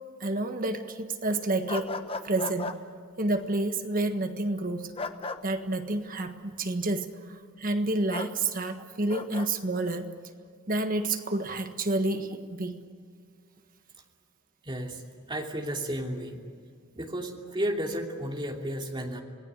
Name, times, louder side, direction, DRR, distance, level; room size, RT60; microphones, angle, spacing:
voice 1, 0.2-2.0 2.2-2.7 3.2-4.9 5.4-10.1 10.7-12.8, right 2 dB, 40° right, 7 dB, 1.5 m, -29 dB
sound 1, 1.7-2.8 5.0-5.4 8.1-8.3 9.1-9.5, left 3 dB, 25° left, 1.0 m, -35 dB
voice 2, 14.6-15.0 15.3-16.4 16.9-19.2, right 1 dB, 25° right, 1 dB, 2.9 m, -33 dB
27.5 x 19.0 x 8.2 m, 2.1 s
head